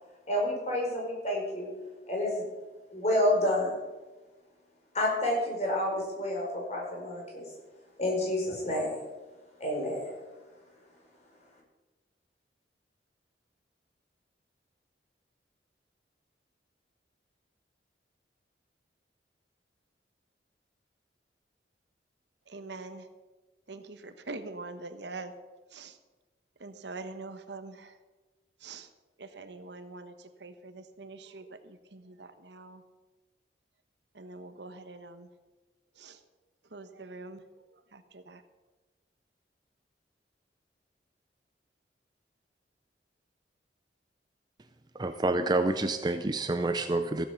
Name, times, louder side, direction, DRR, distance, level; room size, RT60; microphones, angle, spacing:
voice 1, 0.3-1.7 2.1-2.4 2.9-3.7 4.9-7.5 8.0-9.0 9.6-10.1, left 1 dB, 40° left, -2 dB, 4.8 m, -29 dB
voice 2, 22.5-23.0 23.7-25.3 25.7-25.9 26.6-27.9 28.6-28.9 29.2-30.1 30.4-32.8 34.1-35.3 36.0-36.2 36.7-37.4 37.9-38.4, right 3 dB, 75° right, 9 dB, 1.1 m, -44 dB
voice 3, 45.0-47.3, right 2 dB, 25° right, 8 dB, 0.5 m, -28 dB
15.5 x 8.5 x 7.0 m, 1.2 s
head